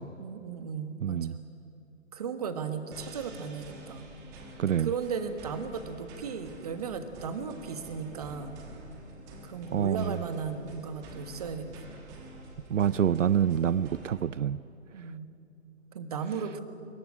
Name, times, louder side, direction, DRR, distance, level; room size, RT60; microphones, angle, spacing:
voice 1, 0.2-1.4 2.1-4.1 4.8-8.6 9.4-11.9 14.9-15.3 15.9-16.6, right 6 dB, 30° right, 9 dB, 1.4 m, -36 dB
voice 2, 1.0-1.4 4.6-4.9 9.7-10.2 12.7-14.6, right 9 dB, 75° right, 18 dB, 0.6 m, -27 dB
sound 1, 2.9-14.2, right 2 dB, 10° right, 1.1 m, -47 dB
22.5 x 18.5 x 9.8 m, 2.8 s
hypercardioid pair, 165°, 38 cm